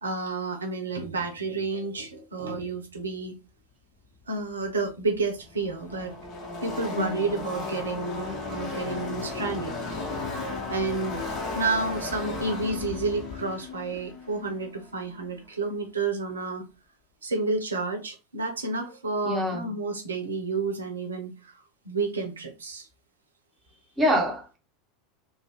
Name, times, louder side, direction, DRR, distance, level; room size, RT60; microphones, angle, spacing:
voice 1, 0.0-3.4 4.3-6.1 6.6-9.7 10.7-11.2 11.5-16.7 17.2-22.9, right 3 dB, 80° right, 0.7 m, -30 dB
Car passing by / Race car auto racing, 4.6-4.7 4.9-15.5, left 3 dB, 40° left, 1.0 m, -35 dB
voice 2, 19.2-19.6 24.0-24.6, equal, 15° right, 1.2 m, -25 dB
2.5 x 2.1 x 3.4 m
figure-of-eight pair, 80°, 0 cm